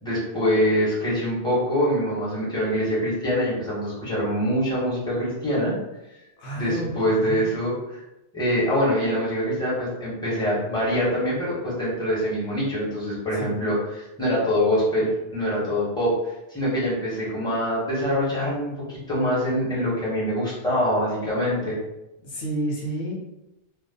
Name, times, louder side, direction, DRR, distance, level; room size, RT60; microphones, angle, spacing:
voice 1, 0.0-5.7 6.5-7.7 8.3-21.8, equal, 5° left, -9 dB, 1.2 m, -24 dB
voice 2, 6.4-7.4 13.3-13.6 22.2-23.1, right 1 dB, 75° left, -2 dB, 1.0 m, -30 dB
2.5 x 2.5 x 3.6 m, 0.95 s
omnidirectional pair, 1.2 m